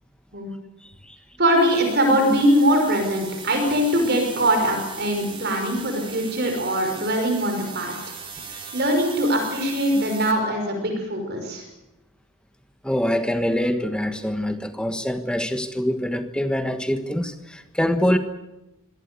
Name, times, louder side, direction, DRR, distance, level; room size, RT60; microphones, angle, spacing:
voice 1, 1.4-8.0 8.5-11.6, equal, 45° right, 3 dB, 5.6 m, -22 dB
sound 1, 1.5-10.3, right 6 dB, 25° right, 3.1 m, -39 dB
voice 2, 12.8-18.2, equal, 5° left, 8 dB, 1.4 m, -24 dB
25.0 x 18.0 x 8.3 m, 0.96 s
head